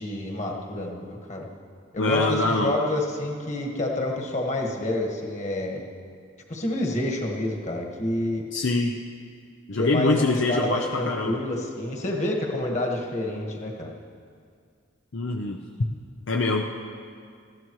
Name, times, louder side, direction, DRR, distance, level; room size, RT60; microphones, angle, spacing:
voice 1, 0.0-1.4 1.9-5.8 6.5-8.4 9.8-13.9, left 1 dB, 35° left, 0 dB, 1.5 m, -28 dB
voice 2, 2.0-2.8 8.5-9.0 9.7-11.4 15.1-15.6 16.3-16.6, left 3 dB, 65° left, 2 dB, 0.6 m, -24 dB
19.5 x 14.0 x 3.1 m, 2.2 s
head